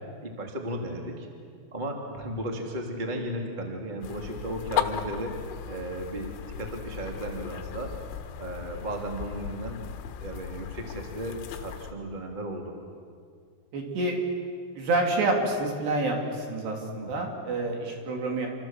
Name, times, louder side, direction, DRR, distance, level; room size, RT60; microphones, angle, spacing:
voice 1, 0.2-1.3 1.7-7.9 8.4-9.8 10.2-12.7 16.8-17.2, right 1 dB, 15° right, 1 dB, 1.7 m, -35 dB
sound 1, 4.0-11.9, left 10 dB, 75° left, 3.7 m, -36 dB
voice 2, 13.7-14.2 14.8-18.5, right 2 dB, 55° right, 1 dB, 5.0 m, -28 dB
28.0 x 26.0 x 7.5 m, 2.2 s
omnidirectional pair, 6.0 m